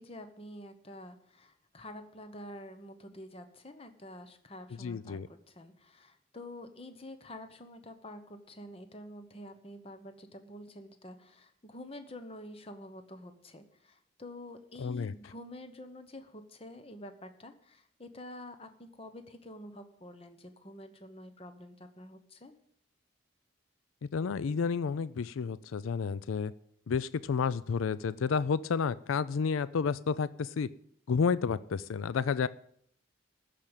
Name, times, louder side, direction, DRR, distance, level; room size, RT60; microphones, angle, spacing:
voice 1, 0.0-22.5, left 1 dB, 30° left, 8 dB, 1.0 m, -48 dB
voice 2, 4.8-5.3 14.8-15.1 24.1-26.5 26.9-30.7 31.1-32.5, left 5 dB, 85° left, 17 dB, 0.4 m, -30 dB
14.0 x 5.1 x 8.9 m, 0.67 s
head